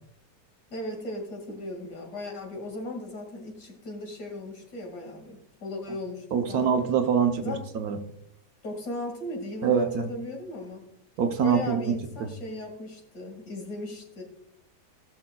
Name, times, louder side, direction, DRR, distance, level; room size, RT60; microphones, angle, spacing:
voice 1, 0.7-6.7 7.4-7.6 8.6-10.9 11.4-14.2, left 1 dB, 65° left, 2 dB, 2.6 m, -36 dB
voice 2, 6.3-8.0 9.6-10.1 11.2-11.9 12.2-12.3, right 6 dB, 65° right, 6 dB, 1.1 m, -24 dB
17.5 x 6.8 x 2.2 m, 0.73 s
omnidirectional pair, 1.9 m